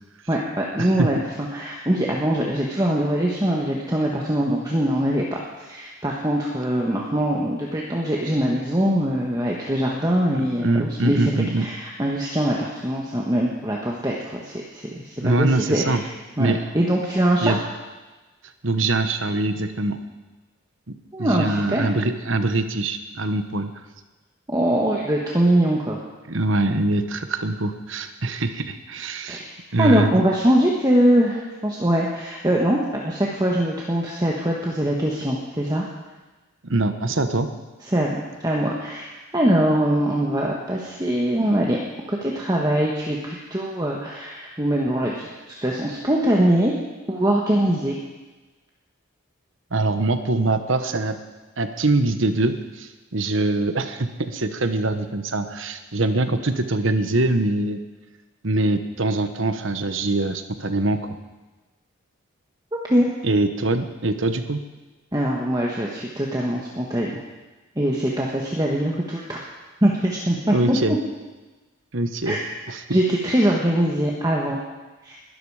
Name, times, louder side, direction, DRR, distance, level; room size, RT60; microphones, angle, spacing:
voice 1, 0.3-1.2 1.5-5.3 5.6-16.1 16.4-17.5 21.1-21.9 24.5-26.0 29.3-35.8 37.8-41.8 42.1-46.7 47.1-48.0 62.8-63.1 65.1-67.1 67.7-69.4 69.8-70.8 72.2-72.4 72.9-74.6 75.0-75.2, right 1 dB, 20° right, -2 dB, 1.5 m, -22 dB
voice 2, 0.8-1.1 10.6-11.7 15.2-16.0 16.4-16.6 17.4-17.6 18.6-20.0 20.9-23.7 26.3-29.4 29.7-30.1 36.7-37.5 49.7-51.2 51.6-57.8 58.4-61.2 63.2-64.6 70.5-70.9 71.9-72.4 72.7-72.8, right 2 dB, 65° right, 8 dB, 1.2 m, -23 dB
21.0 x 13.0 x 5.0 m, 1.2 s
head